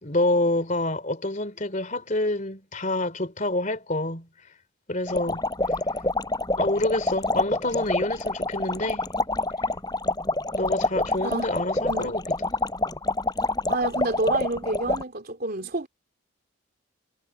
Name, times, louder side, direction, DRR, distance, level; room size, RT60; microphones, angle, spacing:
voice 1, 0.0-4.3 4.9-5.5 6.6-9.0 10.5-12.5, left 2 dB, 35° left, 3.1 m, -27 dB
sound 1, 5.1-15.0, left 2 dB, 20° left, 5.2 m, -27 dB
voice 2, 11.2-11.5 11.8-12.1 13.7-15.9, right 2 dB, 45° right, 3.2 m, -28 dB
head